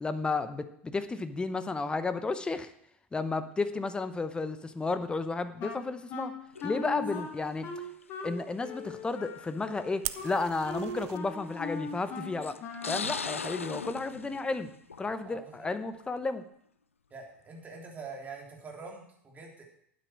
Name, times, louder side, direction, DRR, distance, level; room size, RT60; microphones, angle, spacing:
voice 1, 0.0-2.7 3.1-6.3 6.6-7.7 8.2-12.6 12.8-14.7 15.0-16.4, left 3 dB, 15° left, 11 dB, 0.9 m, -32 dB
Wind instrument woodwind instrument, 5.6-13.1, left 3 dB, 40° left, 2.2 m, -40 dB
sound 1, 6.5-7.0 8.0-8.1 9.2-9.3 9.8-9.9 11.3-11.7 12.4-15.3 15.7-16.1, left 5 dB, 85° left, 0.4 m, -38 dB
Fire, 10.0-11.2, right 16 dB, 45° right, 0.6 m, -39 dB
voice 2, 15.2-15.7 17.1-19.6, right 4 dB, 25° right, 0 dB, 3.4 m, -45 dB
12.0 x 9.2 x 4.6 m, 0.70 s
figure-of-eight pair, 80°, 7 cm